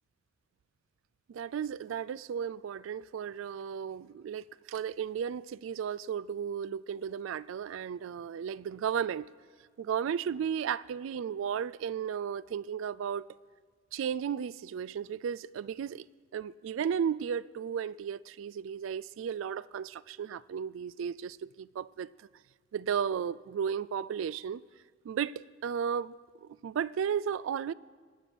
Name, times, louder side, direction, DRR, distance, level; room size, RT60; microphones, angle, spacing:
voice 1, 1.3-9.3 9.8-13.3 13.9-16.1 16.3-22.1 22.7-24.6 25.0-26.1 26.4-27.7, right 8 dB, 70° right, 0.3 m, -34 dB
20.5 x 7.0 x 6.0 m
head